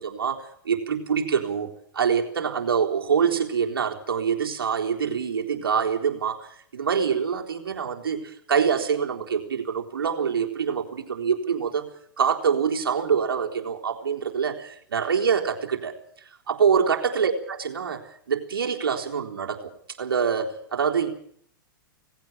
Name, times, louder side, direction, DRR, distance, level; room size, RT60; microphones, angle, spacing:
voice 1, 0.0-1.7 1.9-11.9 12.2-15.9 16.5-18.0 18.3-19.7 20.0-21.1, right 7 dB, 85° right, 2 dB, 3.9 m, -25 dB
18.5 x 16.5 x 9.2 m, 0.64 s
hypercardioid pair, 120°, 12 cm